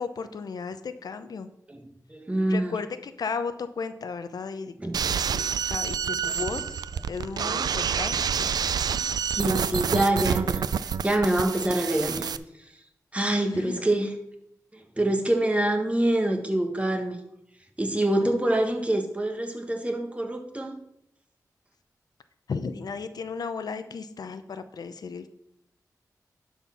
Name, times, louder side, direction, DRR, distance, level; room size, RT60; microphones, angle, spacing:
voice 1, 0.0-1.5 2.5-4.7 5.1-6.8 7.1-8.5 13.5-13.8 18.2-18.5 22.5-25.3, left 5 dB, 75° left, 11 dB, 0.6 m, -35 dB
voice 2, 2.1-2.7 4.8-5.1 6.3-6.4 9.3-12.4 13.1-14.1 14.7-17.2 17.8-20.8, right 1 dB, 20° right, 3 dB, 1.6 m, -26 dB
sound 1, 4.9-12.4, right 7 dB, 80° right, 0.4 m, -28 dB
11.0 x 4.4 x 5.8 m, 0.79 s
cardioid pair, 65°, 7 cm